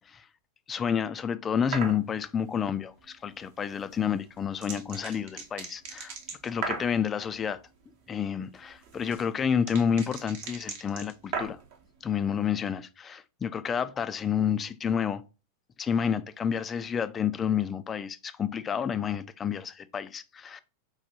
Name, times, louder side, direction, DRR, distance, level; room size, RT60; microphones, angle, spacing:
voice 1, 0.7-6.1 6.4-7.6 8.1-11.6 12.0-15.2 15.8-20.6, left 7 dB, 20° left, 0.3 m, -29 dB
sound 1, 1.7-2.0 3.9-7.0 8.5-11.8, right 5 dB, 50° right, 0.8 m, -37 dB
4.6 x 2.3 x 2.6 m
figure-of-eight pair, 90°, 0 cm